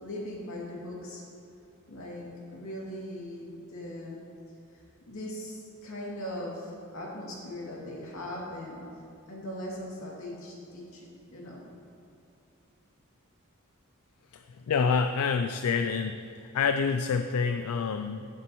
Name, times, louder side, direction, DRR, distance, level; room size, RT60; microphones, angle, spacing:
voice 1, 0.0-1.2 1.9-4.2 4.7-8.8 9.3-11.6, left 1 dB, 70° left, -4 dB, 2.5 m, -40 dB
voice 2, 14.3-18.3, left 5 dB, 90° left, 8 dB, 0.4 m, -28 dB
15.0 x 7.4 x 3.0 m, 2.6 s
head